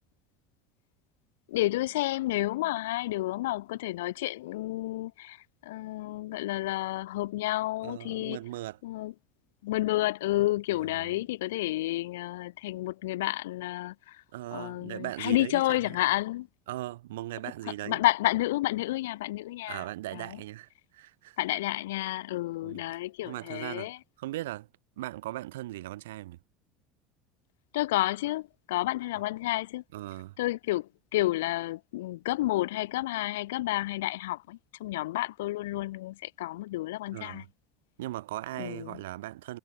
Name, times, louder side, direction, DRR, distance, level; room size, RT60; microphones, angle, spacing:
voice 1, 1.5-8.4 8.8-9.1 9.6-14.2 14.5-16.5 17.8-19.8 20.1-20.4 21.4-24.0 27.7-29.8 30.4-37.4 38.6-39.0, left 17 dB, 80° left, 0.5 m, -30 dB
voice 2, 7.8-8.8 10.7-11.2 14.3-16.0 16.7-18.0 19.7-21.4 22.6-22.8 23.2-23.9 24.2-24.7 25.0-26.4 29.9-30.4 37.1-37.5 38.0-39.6, right 16 dB, 80° right, 0.6 m, -38 dB
hypercardioid pair, 85°, 0 cm